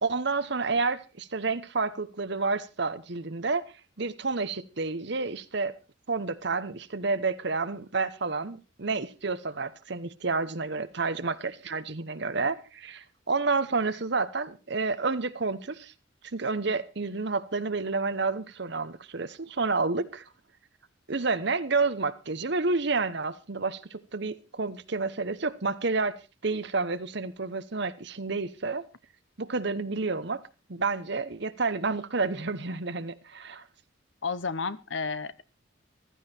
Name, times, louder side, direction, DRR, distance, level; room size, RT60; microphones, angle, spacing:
voice 1, 0.0-3.6 4.0-5.7 6.1-15.9 16.3-20.2 21.1-26.2 26.4-28.8 29.4-30.4 30.7-33.6, right 4 dB, 55° right, 1.0 m, -30 dB
voice 2, 34.2-35.5, left 4 dB, 65° left, 0.9 m, -32 dB
15.0 x 13.5 x 4.4 m
head